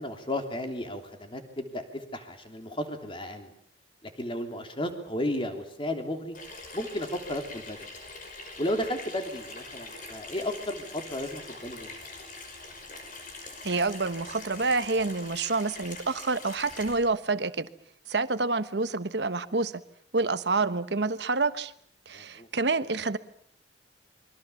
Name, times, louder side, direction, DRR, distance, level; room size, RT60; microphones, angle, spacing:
voice 1, 0.0-3.5 4.0-6.4 6.7-7.8 8.6-11.9 22.1-22.5, left 1 dB, 30° left, 5 dB, 3.3 m, -34 dB
Water tap faucet / Sink (filling or washing), 6.3-17.0, left 3 dB, 50° left, 5.6 m, -44 dB
voice 2, 13.6-17.7 18.1-19.7 20.1-21.7 22.1-23.2, right 3 dB, 65° right, 13 dB, 1.2 m, -28 dB
28.0 x 23.5 x 7.2 m, 0.66 s
head